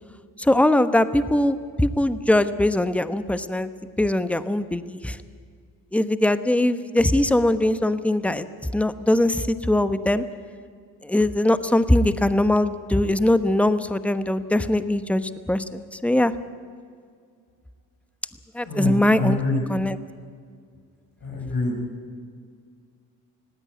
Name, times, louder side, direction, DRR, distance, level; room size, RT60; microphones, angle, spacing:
voice 1, 0.4-3.7 4.0-5.2 5.9-8.5 8.7-10.2 11.0-16.3 18.5-19.4 19.7-20.0, left 1 dB, 5° left, 12 dB, 1.1 m, -21 dB
voice 2, 18.6-19.6 21.2-21.8, left 2 dB, 60° left, -2 dB, 7.1 m, -26 dB
19.5 x 16.5 x 9.6 m, 2.1 s
cardioid pair, 70°, 40 cm